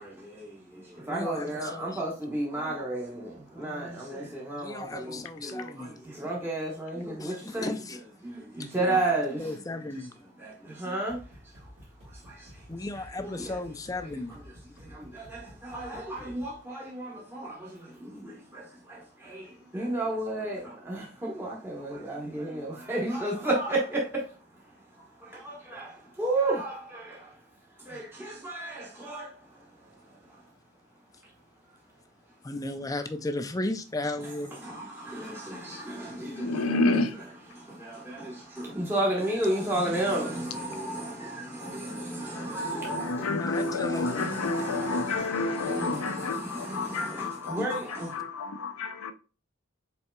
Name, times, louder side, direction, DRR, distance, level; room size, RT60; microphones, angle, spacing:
voice 1, 0.0-9.6 9.9-10.1 10.3-13.6 13.9-30.5 31.2-31.3 34.2-37.2 37.5-48.2, right 2 dB, 10° right, 1.1 m, -34 dB
voice 2, 1.1-2.0 4.6-6.0 7.2-8.0 8.6-9.0 9.4-10.1 12.7-14.4 25.7-25.8 32.4-34.6 34.8-35.4 43.3-44.3, left 2 dB, 15° left, 0.4 m, -35 dB
sound 1, 11.1-16.6, equal, 60° right, 2.0 m, -51 dB
voice 3, 36.3-37.2 41.9-49.1, left 3 dB, 75° left, 0.6 m, -30 dB
5.6 x 4.1 x 2.2 m
head